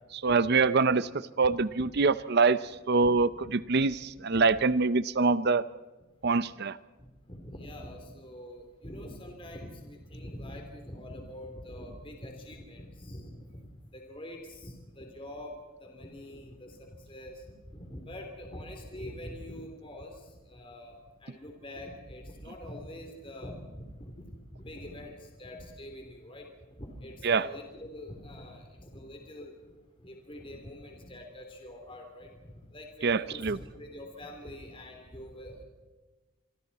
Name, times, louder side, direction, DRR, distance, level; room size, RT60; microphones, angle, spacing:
voice 1, 0.1-1.1 1.4-5.6 6.2-6.8 27.2-27.5 33.0-33.6, right 4 dB, 50° right, 16 dB, 0.6 m, -25 dB
voice 2, 1.5-1.9 3.0-3.1 3.4-3.5 4.3-4.4 6.2-6.3 7.3-13.6 13.9-15.5 15.8-17.4 17.7-20.2 20.5-21.0 21.2-23.6 24.0-24.2 24.5-25.1 25.4-26.5 26.8-29.5 30.0-32.3 32.7-35.6, left 1 dB, 25° left, 3 dB, 3.1 m, -44 dB
26.5 x 24.5 x 4.2 m, 1.2 s
head